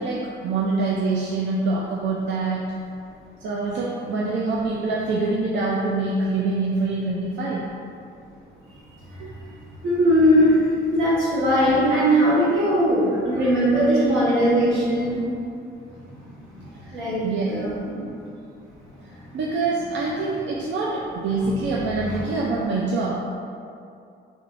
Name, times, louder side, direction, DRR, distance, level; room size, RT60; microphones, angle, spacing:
voice 1, 0.0-2.6 3.4-7.6 9.2-9.3 16.9-17.5 19.3-23.1, right 3 dB, 65° right, -4 dB, 0.4 m, -25 dB
voice 2, 9.8-10.6 10.9-15.2 16.9-17.2 17.5-18.0 21.4-21.7 22.1-22.2, equal, 85° right, -8 dB, 1.2 m, -20 dB
3.6 x 3.5 x 2.4 m, 2.5 s
cardioid pair, 90°, 20 cm